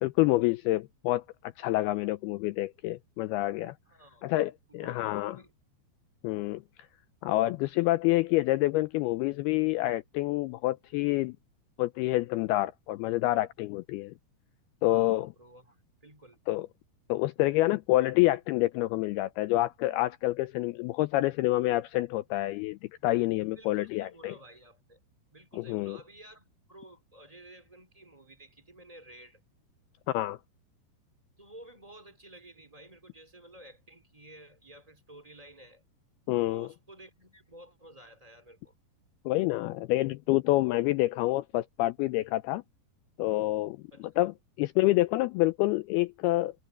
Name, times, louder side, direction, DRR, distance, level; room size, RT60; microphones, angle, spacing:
voice 1, 0.0-1.2 1.6-3.7 4.2-5.4 6.2-6.6 7.2-11.4 11.8-14.1 14.8-15.3 16.5-16.7 17.1-24.4 25.5-26.0 30.1-30.4 36.3-36.7 39.3-42.6 43.2-43.8 44.2-44.3 44.6-46.5, left 18 dB, 85° left, 2.2 m, -27 dB
voice 2, 3.8-4.3 4.7-5.5 14.8-16.4 23.5-25.0 25.3-29.4 31.4-35.8 36.3-38.7 43.9-44.1, right 1 dB, 10° right, 2.1 m, -52 dB
omnidirectional pair, 5.0 m